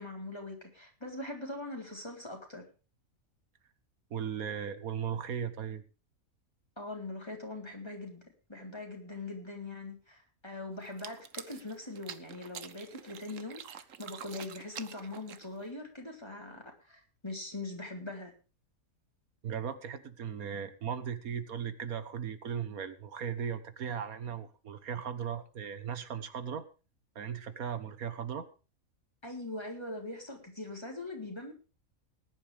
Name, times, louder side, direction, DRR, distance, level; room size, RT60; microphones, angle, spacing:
voice 1, 0.0-2.6 6.8-8.2 8.5-18.3 29.2-31.5, left 2 dB, 20° left, 1 dB, 3.9 m, -42 dB
voice 2, 4.1-5.8 19.4-26.7 27.1-28.5, right 8 dB, 85° right, 11 dB, 1.7 m, -37 dB
sound 1, 10.8-15.7, right 8 dB, 65° right, 1.3 m, -47 dB
19.5 x 11.0 x 3.5 m, 0.33 s
omnidirectional pair, 1.5 m